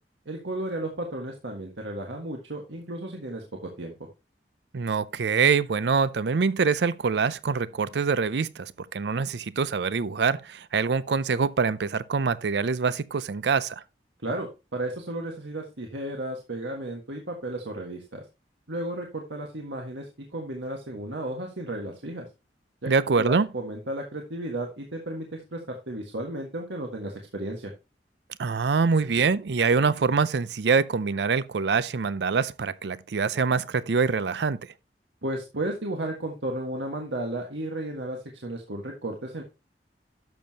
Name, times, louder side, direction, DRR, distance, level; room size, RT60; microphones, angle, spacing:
voice 1, 0.2-3.9 14.2-18.2 18.7-22.3 22.8-27.7 35.2-39.4, right 1 dB, 90° right, 1.6 m, -34 dB
voice 2, 4.7-13.8 22.9-23.5 28.4-34.6, right 5 dB, 70° right, 0.5 m, -24 dB
12.0 x 7.0 x 2.8 m
head